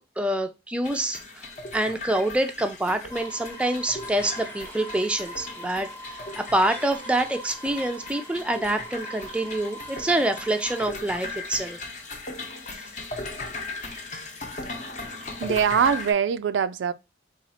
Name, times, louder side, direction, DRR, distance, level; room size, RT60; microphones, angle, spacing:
voice 1, 0.0-1.5 1.7-11.8, right 1 dB, 5° right, 0.4 m, -26 dB
sound 1, 0.8-16.1, left 2 dB, 40° left, 0.8 m, -38 dB
sound 2, 3.1-10.9, right 1 dB, 10° left, 0.8 m, -42 dB
voice 2, 15.4-16.9, right 7 dB, 85° right, 0.3 m, -23 dB
4.1 x 2.4 x 4.1 m
head